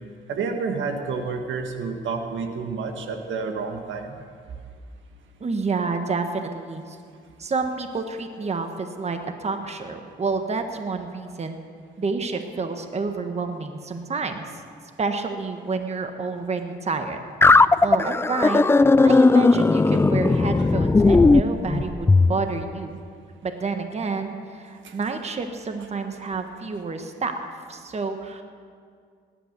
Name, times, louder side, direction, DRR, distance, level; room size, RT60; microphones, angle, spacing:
voice 1, 0.3-4.1 24.8-24.9, right 4 dB, 75° right, 5 dB, 1.6 m, -29 dB
voice 2, 5.4-7.0 7.4-11.6 12.0-14.4 15.0-17.2 17.5-18.6 19.0-23.0 23.4-27.3 27.7-28.4, right 4 dB, 35° right, 6 dB, 1.3 m, -29 dB
sound 1, 17.4-22.3, left 3 dB, 10° left, 0.3 m, -16 dB
18.0 x 11.0 x 6.7 m, 2.2 s
cardioid pair, 90°, 20 cm